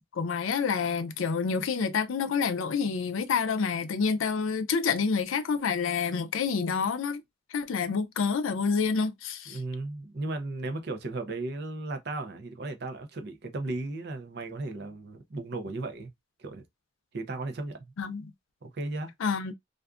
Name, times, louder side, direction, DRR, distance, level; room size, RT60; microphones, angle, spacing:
voice 1, 0.1-7.2 7.5-9.6 18.0-18.3 19.2-19.5, left 5 dB, 85° left, 0.4 m, -28 dB
voice 2, 9.5-16.1 16.4-16.6 17.1-17.9 18.6-19.1, right 2 dB, 55° right, 0.6 m, -35 dB
2.5 x 2.3 x 2.4 m
head